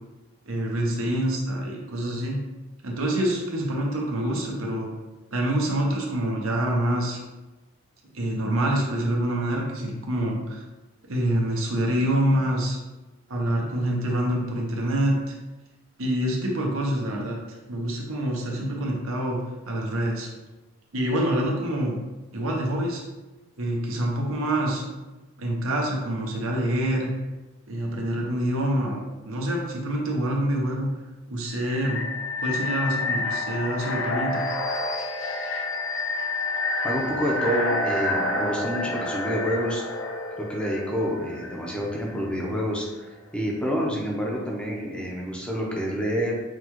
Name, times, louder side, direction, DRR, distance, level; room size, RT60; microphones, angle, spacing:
voice 1, 0.5-2.4 2.8-4.9 5.3-7.2 8.1-10.6 11.1-12.8 13.3-15.3 16.0-17.4 17.7-19.4 19.7-20.3 20.9-21.9 22.3-23.0 23.6-25.0 25.4-27.1 27.7-30.9 31.3-32.0 32.4-34.4, right 1 dB, 80° right, -1 dB, 0.8 m, -26 dB
sound 1, 31.5-42.3, left 2 dB, 70° left, 0.6 m, -29 dB
voice 2, 36.8-39.8 40.5-46.3, equal, 5° left, -3 dB, 0.6 m, -28 dB
6.1 x 2.3 x 3.0 m, 1.1 s
head